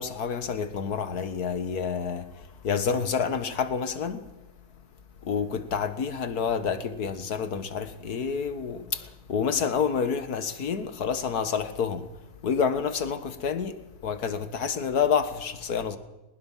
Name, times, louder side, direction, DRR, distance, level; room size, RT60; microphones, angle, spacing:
voice 1, 0.0-4.3 5.2-12.1 12.4-16.0, left 6 dB, 50° left, 1.8 m, -28 dB
20.5 x 20.5 x 7.4 m
omnidirectional pair, 2.4 m